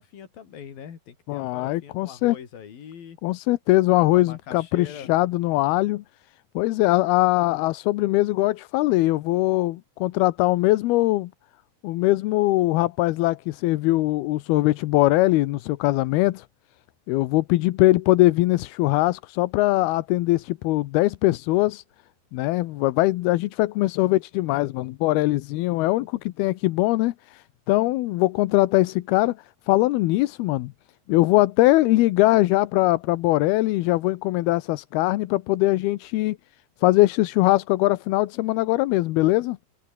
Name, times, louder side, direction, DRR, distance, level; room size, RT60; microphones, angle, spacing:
voice 1, 0.0-3.2 4.0-5.1, left 8 dB, 60° left, 4.8 m, -42 dB
voice 2, 1.3-2.4 3.2-6.0 6.6-11.3 11.8-16.5 17.1-21.8 22.3-29.4 29.7-30.7 31.1-36.4 36.8-39.6, left 18 dB, 80° left, 2.6 m, -21 dB
open air
omnidirectional pair, 4.7 m